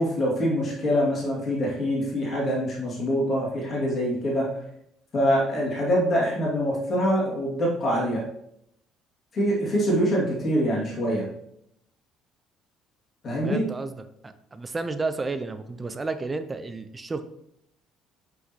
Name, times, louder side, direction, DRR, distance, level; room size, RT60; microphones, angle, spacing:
voice 1, 0.0-4.5 5.1-8.2 9.3-11.3 13.2-13.7, equal, 40° left, -4 dB, 2.2 m, -24 dB
voice 2, 13.4-14.0 14.2-17.2, right 3 dB, 25° right, 10 dB, 0.6 m, -31 dB
5.7 x 5.6 x 2.9 m, 0.75 s
figure-of-eight pair, 55°, 0 cm